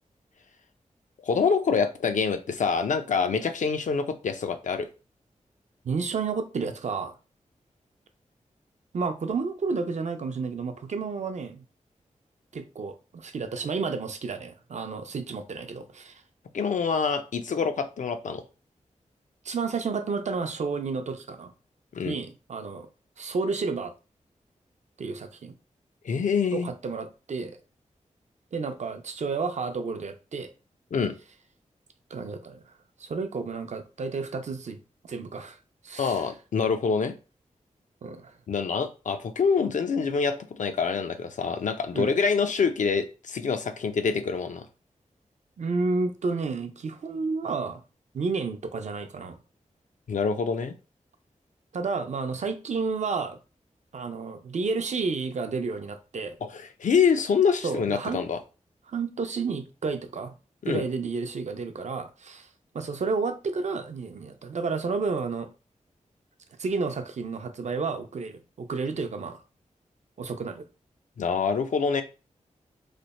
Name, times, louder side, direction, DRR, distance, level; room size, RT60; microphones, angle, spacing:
voice 1, 1.2-4.9 16.5-18.4 21.9-22.2 26.0-26.7 30.9-31.1 36.0-37.1 38.5-44.7 50.1-50.7 56.4-58.4 60.6-60.8 71.2-72.0, left 5 dB, 70° left, 0.5 m, -26 dB
voice 2, 5.8-7.2 8.9-11.6 12.5-16.2 19.4-21.5 22.0-22.9 23.2-23.9 25.0-25.5 26.5-27.6 28.5-30.5 32.1-32.6 33.0-34.8 35.1-35.6 35.8-36.3 38.0-38.3 41.9-42.1 45.6-47.8 48.1-49.4 51.7-53.4 53.9-56.4 57.6-58.2 58.9-60.3 60.7-62.5 62.7-65.5 66.6-69.4 70.2-70.6, right 4 dB, 60° right, 0.5 m, -31 dB
3.3 x 2.0 x 4.0 m
wide cardioid pair, 85°, 13 cm